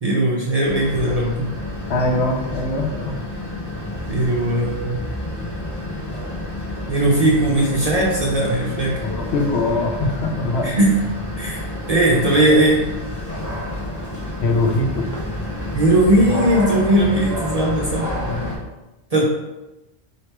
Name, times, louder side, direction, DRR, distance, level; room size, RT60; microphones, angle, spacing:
voice 1, 0.0-1.5 4.1-5.0 6.9-9.0 10.6-10.9 11.4-11.6 11.9-12.9 15.7-18.1 19.1-19.2, right 1 dB, 45° right, -3 dB, 0.5 m, -18 dB
sound 1, 0.6-18.6, left 1 dB, 20° left, 0.6 m, -29 dB
voice 2, 1.9-3.1 9.0-10.7 14.4-15.1 18.2-18.6, left 2 dB, 70° left, 2 dB, 0.9 m, -22 dB
3.1 x 2.9 x 4.4 m, 1.0 s
omnidirectional pair, 1.2 m